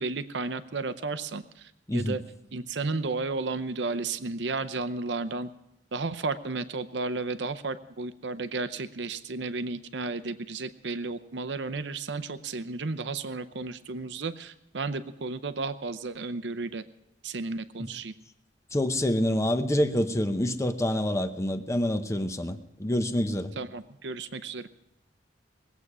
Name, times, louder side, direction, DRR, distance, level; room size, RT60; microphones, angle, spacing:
voice 1, 0.0-2.2 2.5-5.5 5.9-16.8 17.2-18.1 23.6-24.7, right 3 dB, 70° right, 0.7 m, -33 dB
voice 2, 1.9-2.2 17.8-17.9 18.7-23.6, left 1 dB, 15° left, 0.8 m, -27 dB
21.0 x 8.3 x 6.1 m
head